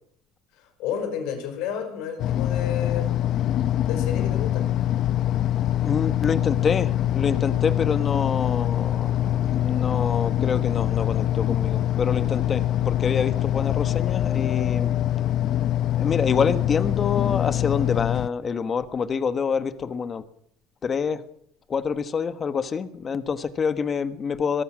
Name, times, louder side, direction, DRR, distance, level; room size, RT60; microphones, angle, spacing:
voice 1, 0.6-3.2 3.8-4.7, left 7 dB, 60° left, 8 dB, 5.4 m, -31 dB
sound 1, 2.2-18.3, left 12 dB, 40° left, 0.8 m, -24 dB
voice 2, 5.8-14.9 16.0-20.2 20.8-21.2 21.7-24.6, left 6 dB, 25° left, 13 dB, 1.2 m, -26 dB
22.0 x 21.5 x 6.1 m, 0.67 s
cardioid pair, 165°, 0 cm